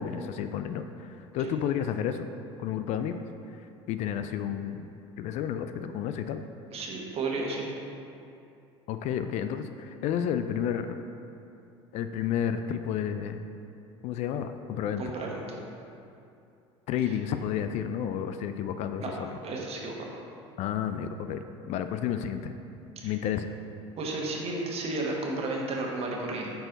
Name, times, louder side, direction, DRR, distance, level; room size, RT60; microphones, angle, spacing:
voice 1, 0.0-2.3 2.6-3.2 3.5-4.9 5.2-6.4 8.9-11.0 11.9-13.4 14.0-15.0 16.9-19.3 20.6-22.5 23.0-23.5, left 9 dB, 50° left, 9 dB, 0.4 m, -31 dB
voice 2, 6.7-7.7 15.0-15.6 19.0-19.1 19.4-20.2 23.0-23.1 24.0-26.5, right 2 dB, 45° right, -1 dB, 1.4 m, -33 dB
7.6 x 4.6 x 3.9 m, 2.6 s
hypercardioid pair, 80°, 15 cm